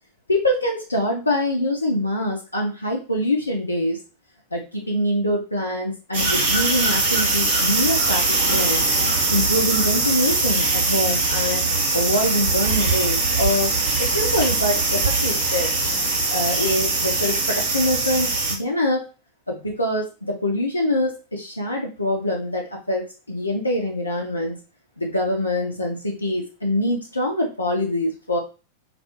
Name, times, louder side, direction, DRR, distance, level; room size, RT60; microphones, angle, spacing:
voice 1, 0.3-4.0 4.5-8.8 9.3-11.6 11.9-13.7 14.0-15.9 16.3-19.0 19.5-24.6 25.0-28.4, left 1 dB, 80° left, 0 dB, 0.4 m, -24 dB
sound 1, 6.1-18.5, right 3 dB, 60° right, 1.0 m, -21 dB
2.3 x 2.2 x 2.8 m, 0.33 s
figure-of-eight pair, 90°, 0 cm